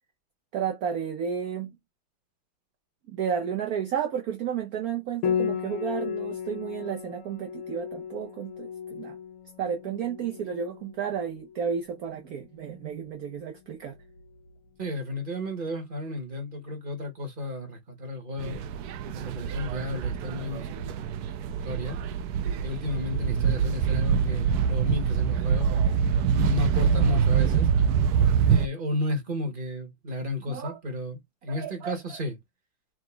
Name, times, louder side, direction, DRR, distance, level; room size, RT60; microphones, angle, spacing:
voice 1, 0.5-1.7 3.1-9.2 9.6-14.0 30.5-30.8 31.5-32.0, right 7 dB, 60° right, 1.0 m, -32 dB
Piano, 5.2-14.6, left 8 dB, 85° left, 1.8 m, -36 dB
voice 2, 14.8-18.6 19.0-21.3 21.7-22.0 22.6-26.0 26.3-27.7 28.5-32.4, left 2 dB, 25° right, 1.9 m, -33 dB
sound 1, 18.4-28.7, right 7 dB, 80° right, 0.8 m, -25 dB
5.9 x 3.5 x 2.2 m
omnidirectional pair, 2.3 m